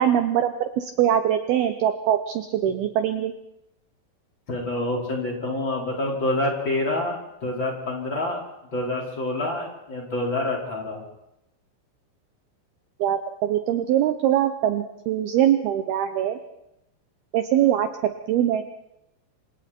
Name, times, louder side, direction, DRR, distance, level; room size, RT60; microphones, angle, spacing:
voice 1, 0.0-3.3 13.0-16.4 17.3-18.7, right 10 dB, 85° right, 9 dB, 2.2 m, -22 dB
voice 2, 4.5-8.4 8.7-11.0, left 2 dB, 25° left, -2 dB, 5.0 m, -27 dB
27.5 x 26.0 x 4.5 m, 0.88 s
omnidirectional pair, 5.7 m